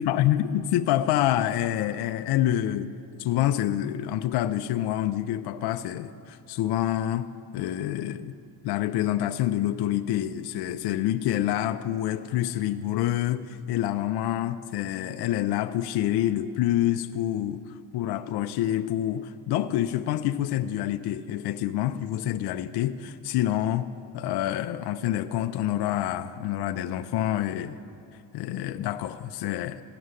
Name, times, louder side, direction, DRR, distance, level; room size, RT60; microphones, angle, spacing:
voice 1, 0.0-2.9 3.2-7.3 7.5-8.3 8.6-23.9 24.1-27.8 28.3-29.8, left 12 dB, 60° left, 9 dB, 0.6 m, -27 dB
15.5 x 6.3 x 9.6 m, 2.8 s
supercardioid pair, 80°, 44 cm